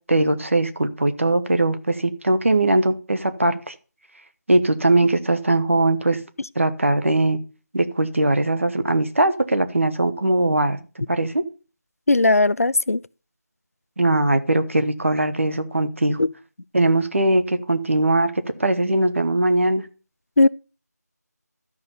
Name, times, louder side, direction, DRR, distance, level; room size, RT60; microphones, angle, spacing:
voice 1, 0.1-3.7 4.5-6.2 6.5-7.4 7.7-10.8 11.1-11.4 14.0-16.2 16.7-18.3 18.6-19.8, right 2 dB, 45° right, 1.2 m, -20 dB
voice 2, 12.1-13.0 16.2-16.3 20.4-20.5, left 2 dB, 55° left, 0.4 m, -17 dB
12.5 x 5.7 x 6.8 m
figure-of-eight pair, 180°, 9 cm